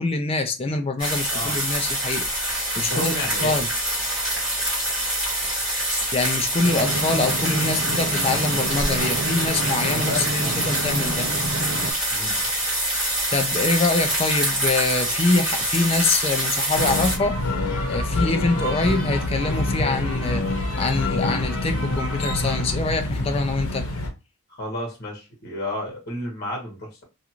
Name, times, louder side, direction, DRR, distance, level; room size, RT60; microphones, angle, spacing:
voice 1, 0.0-2.3 2.8-3.1 3.4-3.7 6.1-11.3 13.3-17.4 17.9-20.4 20.8-23.9, left 3 dB, 25° left, 0.4 m, -24 dB
sound 1, 1.0-17.2, right 1 dB, 5° right, 1.3 m, -25 dB
voice 2, 1.3-1.6 2.7-3.6 8.9-9.1 9.8-10.6 12.1-12.4 24.5-27.0, left 1 dB, 45° left, 1.1 m, -32 dB
sound 2, 6.6-11.9, right 2 dB, 50° right, 0.5 m, -29 dB
sound 3, 16.7-24.1, left 2 dB, 75° left, 0.8 m, -26 dB
2.5 x 2.4 x 2.8 m
head